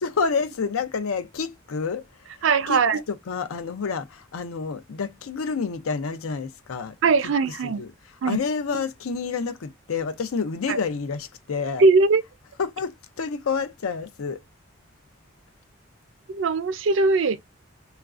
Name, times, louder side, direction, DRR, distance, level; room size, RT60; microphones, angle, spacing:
voice 1, 0.0-2.1 2.7-2.8 3.1-6.9 7.6-7.9 8.2-11.8 12.6-14.4, left 5 dB, 90° left, 0.5 m, -28 dB
voice 2, 2.4-3.0 7.0-7.8 8.2-8.4 8.7-8.8 10.7-10.8 11.8-12.2 16.3-17.4, right 4 dB, 65° right, 0.4 m, -20 dB
3.1 x 2.4 x 2.4 m
head